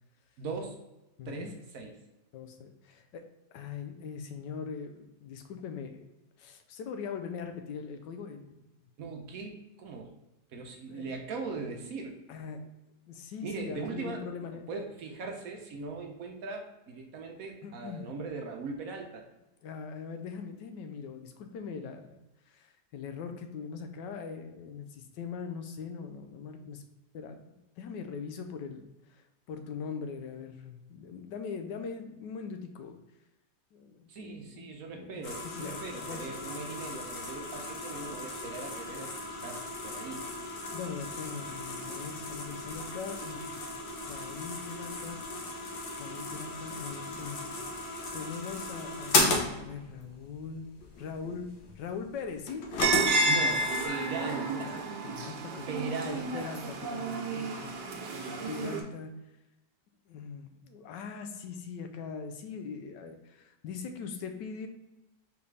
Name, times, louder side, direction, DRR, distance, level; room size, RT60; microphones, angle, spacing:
voice 1, 0.4-0.8 1.3-2.0 9.0-10.1 10.5-12.2 13.4-19.3 34.1-40.3 53.3-54.8 55.7-56.5, right 4 dB, 65° right, 3 dB, 1.0 m, -40 dB
voice 2, 1.2-1.5 2.3-3.2 3.5-6.1 6.4-8.6 10.9-11.1 12.3-12.7 13.1-14.6 17.6-18.1 19.6-22.2 22.5-26.8 27.1-33.0 33.7-34.6 34.9-36.5 40.7-43.6 44.0-45.2 45.9-49.3 49.5-50.7 51.0-51.5 51.8-52.7 54.5-55.6 56.1-59.1 60.0-64.7, left 5 dB, 90° left, 6 dB, 1.3 m, -41 dB
sound 1, 35.2-53.9, left 2 dB, 70° left, 1.4 m, -35 dB
sound 2, 52.8-58.8, right 2 dB, 90° right, 1.4 m, -31 dB
4.7 x 3.5 x 3.2 m, 0.99 s
omnidirectional pair, 1.8 m